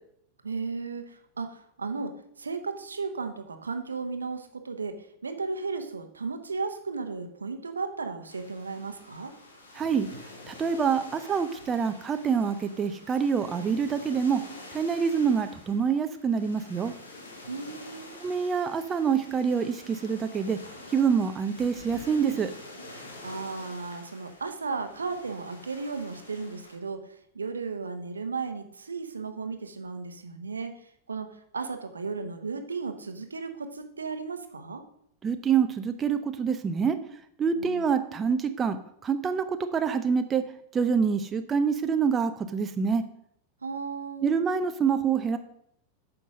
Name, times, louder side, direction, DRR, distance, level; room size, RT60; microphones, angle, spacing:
voice 1, 0.4-9.3 17.5-18.1 22.9-34.8 37.6-37.9 43.6-44.3, right 4 dB, 75° right, 7 dB, 0.9 m, -35 dB
sound 1, 8.3-26.8, left 2 dB, 70° left, 1.7 m, -47 dB
voice 2, 9.7-10.1 10.5-14.4 14.7-16.9 18.2-20.6 20.9-22.5 35.2-37.0 37.4-38.8 39.0-40.4 40.7-43.0 44.2-45.4, right 6 dB, 20° right, 8 dB, 0.6 m, -26 dB
9.1 x 6.0 x 5.0 m, 0.71 s
figure-of-eight pair, 90°, 0 cm